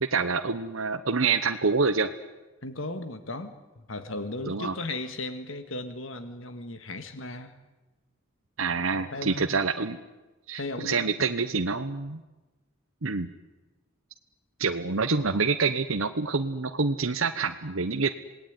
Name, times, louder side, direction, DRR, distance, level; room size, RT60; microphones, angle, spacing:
voice 1, 0.0-2.1 4.5-4.7 8.6-10.0 10.5-12.2 13.0-13.3 14.6-18.1, right 4 dB, 80° right, 7 dB, 1.1 m, -27 dB
voice 2, 2.6-7.5 8.7-9.5 10.5-11.9, left 2 dB, 70° left, 9 dB, 1.8 m, -37 dB
27.5 x 18.5 x 9.6 m, 1.1 s
head